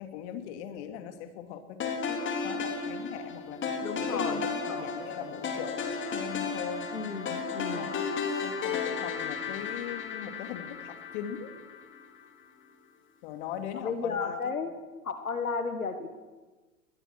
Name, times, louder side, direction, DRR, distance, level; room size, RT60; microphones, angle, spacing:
voice 1, 0.0-6.9 7.6-11.5 13.2-14.5, left 9 dB, 50° left, 7 dB, 3.0 m, -40 dB
sound 1, 1.8-12.1, left 5 dB, 30° left, 3.8 m, -34 dB
voice 2, 3.8-4.9 6.9-7.9 13.7-14.7 15.0-16.2, left 5 dB, 90° left, 8 dB, 1.8 m, -34 dB
22.0 x 21.0 x 6.3 m, 1.3 s
hypercardioid pair, 95°, 42 cm